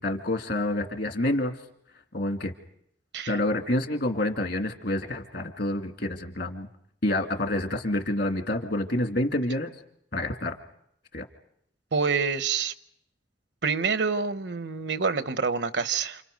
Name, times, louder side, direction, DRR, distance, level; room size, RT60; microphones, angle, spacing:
voice 1, 0.0-1.5 2.1-2.5 3.3-6.7 7.0-9.7 10.1-10.5 11.1-11.2, left 1 dB, 65° left, 2.2 m, -28 dB
voice 2, 11.9-12.7 13.6-16.2, right 5 dB, 80° right, 1.0 m, -27 dB
29.0 x 28.0 x 5.3 m
head